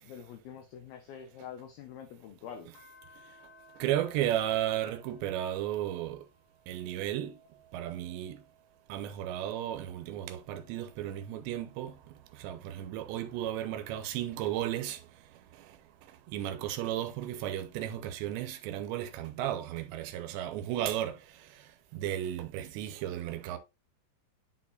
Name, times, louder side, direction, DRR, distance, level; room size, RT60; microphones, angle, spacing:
voice 1, 0.0-2.7, left 8 dB, 75° left, 2.3 m, -46 dB
sound 1, 2.7-9.5 9.9-12.8 13.4-16.2 16.9-19.4 20.7-21.8, right 2 dB, 60° left, 4.4 m, -63 dB
voice 2, 3.8-6.3 6.7-7.4 7.7-8.4 8.9-15.0 15.6-15.8 16.3-21.6 21.9-23.6, right 12 dB, 90° right, 3.0 m, -34 dB
11.0 x 4.4 x 2.5 m
omnidirectional pair, 5.1 m